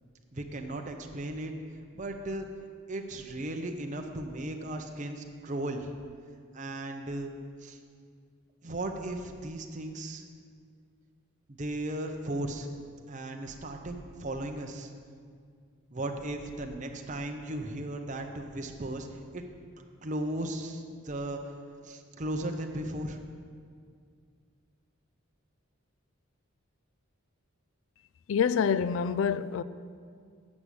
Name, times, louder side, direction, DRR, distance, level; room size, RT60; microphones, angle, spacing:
voice 1, 0.3-1.5 2.0-2.5 2.9-5.9 6.5-7.3 7.6-7.8 8.6-10.2 11.6-12.7 13.1-14.9 15.9-19.4 19.8-21.4 21.8-23.2, right 1 dB, 35° right, 0.6 m, -36 dB
voice 2, 28.3-29.6, left 7 dB, 70° left, 0.3 m, -26 dB
8.5 x 6.1 x 8.1 m
head